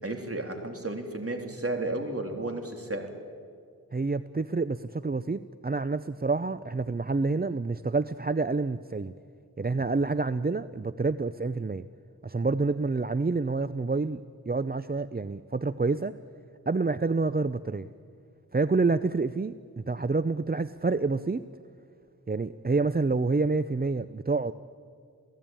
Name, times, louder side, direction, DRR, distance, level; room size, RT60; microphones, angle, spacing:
voice 1, 0.0-3.1, right 2 dB, 45° right, 3 dB, 3.6 m, -33 dB
voice 2, 3.9-9.1 9.6-11.8 12.2-14.2 14.5-16.1 16.7-17.9 18.5-21.4 22.3-24.5, right 3 dB, 30° right, 13 dB, 0.6 m, -28 dB
29.0 x 17.0 x 9.0 m, 2.2 s
wide cardioid pair, 45°, 33 cm